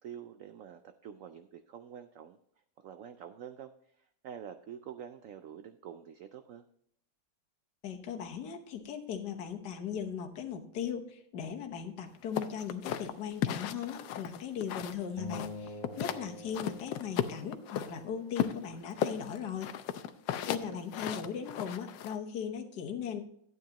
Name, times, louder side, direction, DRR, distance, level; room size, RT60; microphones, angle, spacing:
voice 1, 0.0-2.4 2.8-6.6 20.4-20.8, right 9 dB, 75° right, 9 dB, 0.7 m, -47 dB
voice 2, 7.8-19.7 20.4-23.2, left 7 dB, 65° left, 4 dB, 1.6 m, -38 dB
sound 1, 12.4-15.0 15.3-16.2 16.5-17.9 18.4-22.2, left 10 dB, 85° left, 1.3 m, -35 dB
sound 2, 15.2-17.8, left 2 dB, 45° right, 2.2 m, -44 dB
12.0 x 9.3 x 2.9 m, 0.68 s
omnidirectional pair, 2.0 m